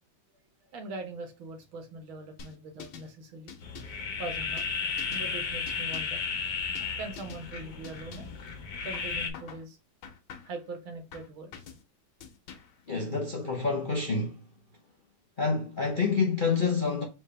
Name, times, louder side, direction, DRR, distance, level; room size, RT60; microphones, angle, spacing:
voice 1, 0.6-3.5 4.2-4.7 5.1-6.6 7.0-8.4 8.8-9.8 10.4-11.5, right 2 dB, 80° right, 2.1 m, -41 dB
sound 1, 2.4-3.1 3.5-4.0 4.6-5.3 5.7-6.2 6.8-6.9 7.2-7.5 7.8-8.4 8.9-9.7 10.0-10.6 11.1-11.8 12.2-12.8, left 7 dB, 80° left, 1.7 m, -47 dB
sound 2, 3.6-9.3, left 5 dB, 65° left, 1.5 m, -34 dB
voice 2, 12.9-14.4 15.4-17.0, left 4 dB, 50° left, 0.6 m, -27 dB
4.5 x 3.3 x 3.3 m
omnidirectional pair, 2.2 m